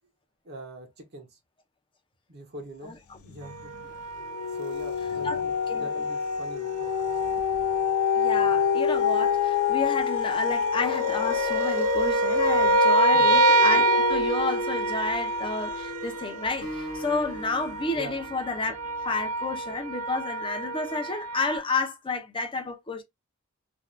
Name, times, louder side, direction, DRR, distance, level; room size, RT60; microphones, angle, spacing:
voice 1, 0.4-1.4 2.3-3.7 4.5-7.1 13.1-13.4 17.9-18.2, right 1 dB, 45° right, 0.7 m, -43 dB
sound 1, 3.3-3.8 4.2-16.7 17.2-17.3, left 6 dB, 70° left, 0.4 m, -27 dB
sound 2, 3.4-6.2 6.7-21.6, right 3 dB, 80° right, 0.4 m, -28 dB
voice 2, 8.1-18.8 19.0-23.0, left 3 dB, 25° left, 0.6 m, -31 dB
Acoustic guitar, 16.6-19.9, equal, 45° left, 1.0 m, -41 dB
2.6 x 2.3 x 3.1 m
head